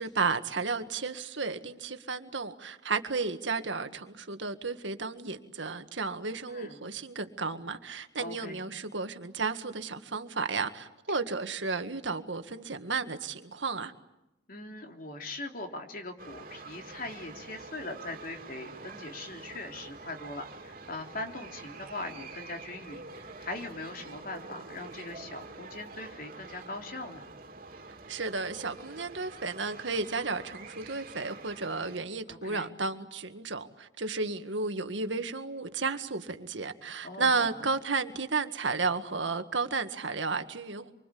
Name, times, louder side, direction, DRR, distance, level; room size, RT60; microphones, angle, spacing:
voice 1, 0.0-13.9 28.1-40.9, right 4 dB, 80° right, 1.8 m, -33 dB
voice 2, 6.5-6.8 8.2-8.6 14.5-27.3 32.3-32.7 37.0-37.6, left 2 dB, 50° left, 3.4 m, -41 dB
sound 1, 16.2-32.0, right 3 dB, 50° right, 2.7 m, -47 dB
26.5 x 25.0 x 8.5 m
head